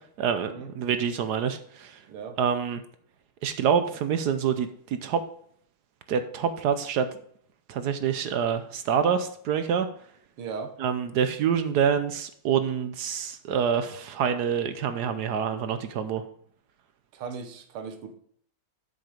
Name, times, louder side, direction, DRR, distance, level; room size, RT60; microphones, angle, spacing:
voice 1, 0.2-2.0 2.4-2.8 3.4-5.2 6.1-7.1 7.7-9.9 10.8-16.2, right 7 dB, 70° right, 10 dB, 1.0 m, -26 dB
voice 2, 2.1-2.4 10.4-10.7 17.1-18.1, right 5 dB, 85° right, 8 dB, 2.0 m, -37 dB
8.1 x 6.7 x 5.0 m, 0.63 s
omnidirectional pair, 2.3 m